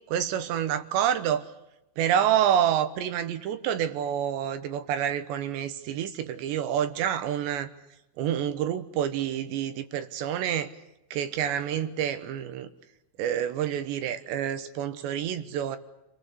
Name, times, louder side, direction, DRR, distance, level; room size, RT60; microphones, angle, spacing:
voice 1, 0.1-1.5 2.0-7.7 8.2-10.7 11.1-12.7 13.2-15.8, right 10 dB, 75° right, 11 dB, 3.0 m, -28 dB
29.5 x 20.5 x 8.1 m, 0.91 s
omnidirectional pair, 5.9 m